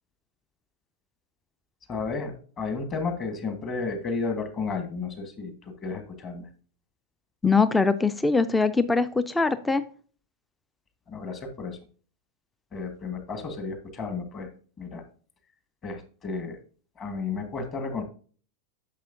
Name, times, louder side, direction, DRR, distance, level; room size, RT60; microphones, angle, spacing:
voice 1, 1.9-6.5 11.1-11.8 12.7-14.5 14.8-15.0 15.8-16.6 17.0-18.0, left 4 dB, 30° left, 7 dB, 1.6 m, -32 dB
voice 2, 7.4-9.8, left 4 dB, 10° left, 14 dB, 0.4 m, -22 dB
10.0 x 6.5 x 2.7 m, 0.42 s
figure-of-eight pair, 90°, 0 cm